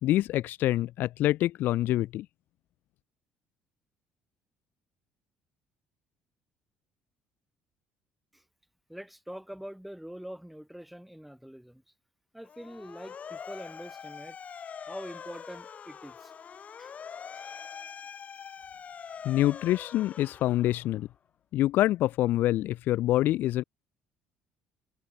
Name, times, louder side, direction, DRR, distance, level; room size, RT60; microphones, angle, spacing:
voice 1, 0.0-2.3 19.2-21.1 21.5-23.6, left 14 dB, 70° left, 0.5 m, -26 dB
voice 2, 8.9-11.8 12.3-14.4 14.9-16.3 16.8-16.9, equal, ahead, 3.0 m, -44 dB
Motor vehicle (road) / Siren, 12.4-21.0, left 7 dB, 45° left, 7.7 m, -44 dB
supercardioid pair, 80°, 3 cm